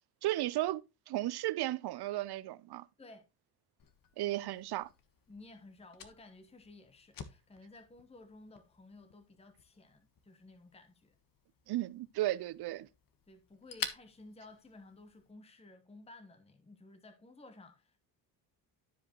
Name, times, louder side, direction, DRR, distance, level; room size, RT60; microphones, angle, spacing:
voice 1, 0.2-2.9 4.2-4.9 11.7-12.9, right 15 dB, 55° right, 0.7 m, -34 dB
Fire, 3.8-15.3, left 7 dB, 45° left, 1.3 m, -50 dB
voice 2, 5.3-11.1 13.3-18.0, left 2 dB, 15° left, 1.1 m, -55 dB
13.0 x 4.9 x 3.0 m
supercardioid pair, 65°, 47 cm